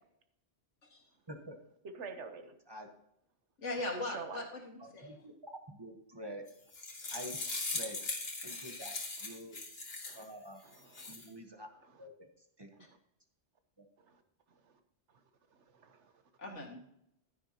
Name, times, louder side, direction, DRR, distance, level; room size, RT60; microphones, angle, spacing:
voice 1, 1.8-2.5 4.0-4.4 8.5-8.7 9.2-9.4 10.1-10.2 10.6-11.1 11.8-12.1 12.7-13.0 14.0-14.2 14.5-14.8 15.1-15.2 15.5-16.1, right 5 dB, 75° right, 8 dB, 1.3 m, -49 dB
voice 2, 3.6-5.1 16.4-16.8, left 2 dB, 80° left, 1 dB, 2.3 m, -39 dB
voice 3, 4.8-5.3 5.7-6.4 7.1-7.4 7.7-8.0 8.4-9.0 9.2-9.6 10.1-10.6 11.1-11.7 12.0-12.3 12.6-12.7 13.8-13.9, equal, 20° right, 4 dB, 1.0 m, -47 dB
sound 1, 6.5-10.3 10.7-11.3, left 3 dB, 55° left, 1.8 m, -40 dB
11.5 x 9.9 x 2.9 m, 0.77 s
omnidirectional pair, 1.2 m